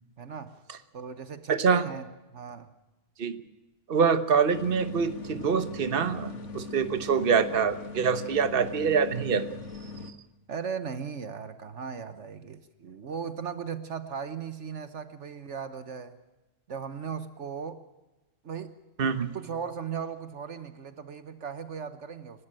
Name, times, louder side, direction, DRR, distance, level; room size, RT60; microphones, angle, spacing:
voice 1, 0.2-0.5 0.9-2.0 2.3-2.7 10.5-16.2 16.7-17.8 18.4-18.7 19.3-22.5, right 6 dB, 65° right, 11 dB, 1.4 m, -37 dB
voice 2, 1.5-1.9 3.2-3.4 3.9-9.5 19.0-19.3, right 6 dB, 50° right, 11 dB, 1.3 m, -25 dB
sound 1, 4.5-10.1, left 4 dB, 70° left, 2.0 m, -40 dB
30.0 x 13.0 x 9.0 m, 1.1 s
omnidirectional pair, 1.3 m